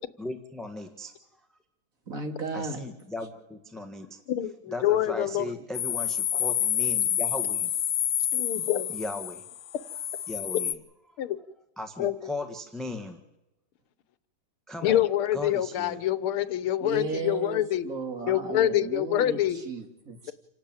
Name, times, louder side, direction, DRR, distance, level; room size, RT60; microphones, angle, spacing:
voice 1, 0.2-1.1 2.5-4.2 4.7-7.7 8.9-9.4 10.3-10.8 11.4-11.5 11.8-13.2 14.7-15.0 15.3-16.0, left 2 dB, ahead, 6 dB, 1.1 m, -37 dB
voice 2, 2.1-2.8 5.3-5.4 16.8-20.3, right 3 dB, 40° right, 5 dB, 2.7 m, -35 dB
voice 3, 4.3-5.5 8.3-8.9 11.2-11.4 12.0-12.1 14.8-17.9 18.3-19.6, left 12 dB, 85° left, 15 dB, 1.9 m, -26 dB
sound 1, 5.7-10.7, left 10 dB, 55° left, 1.1 m, -28 dB
28.0 x 12.0 x 8.9 m, 0.97 s
omnidirectional pair, 2.3 m